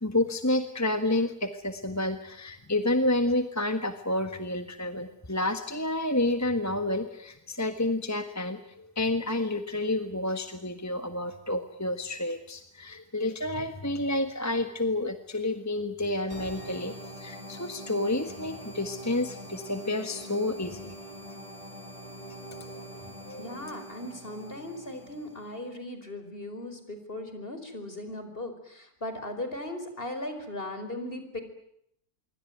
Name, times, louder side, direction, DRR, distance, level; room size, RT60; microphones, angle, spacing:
voice 1, 0.0-20.9 22.6-23.6, left 1 dB, 10° left, 9 dB, 1.4 m, -30 dB
sound 1, 16.3-25.7, right 1 dB, 20° right, 4.7 m, -43 dB
voice 2, 23.4-31.4, left 1 dB, 35° left, 8 dB, 5.1 m, -38 dB
26.0 x 24.0 x 9.3 m, 0.74 s
omnidirectional pair, 1.6 m